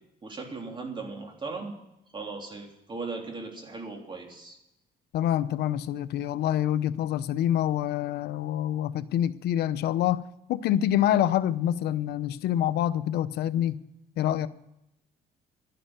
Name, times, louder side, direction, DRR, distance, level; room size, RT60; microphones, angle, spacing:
voice 1, 0.2-1.8 2.1-4.6, right 3 dB, 30° right, 2 dB, 3.4 m, -38 dB
voice 2, 5.1-10.2 10.5-13.8 14.2-14.5, left 11 dB, 75° left, 14 dB, 0.8 m, -26 dB
11.5 x 11.0 x 9.1 m, 0.85 s
cardioid pair, 110°, 17 cm